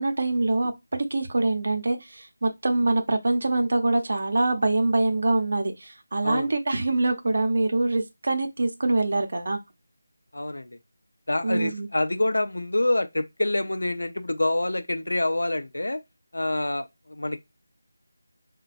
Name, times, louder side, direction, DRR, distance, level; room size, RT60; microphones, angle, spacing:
voice 1, 0.0-9.6 11.4-11.9, right 2 dB, 55° right, 0.6 m, -24 dB
voice 2, 10.3-10.8 11.3-16.0 16.3-17.4, left 1 dB, 90° left, 0.5 m, -26 dB
4.0 x 2.2 x 2.5 m
figure-of-eight pair, 170°, 0 cm